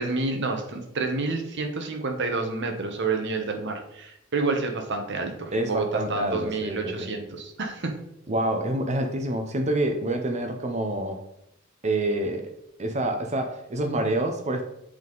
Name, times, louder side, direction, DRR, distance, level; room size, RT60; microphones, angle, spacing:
voice 1, 0.0-8.0, right 3 dB, 60° right, 4 dB, 1.1 m, -29 dB
voice 2, 5.5-7.1 8.3-11.2 11.8-12.5 12.8-14.7, right 1 dB, 35° right, 5 dB, 0.7 m, -27 dB
8.0 x 3.7 x 3.9 m, 0.81 s
head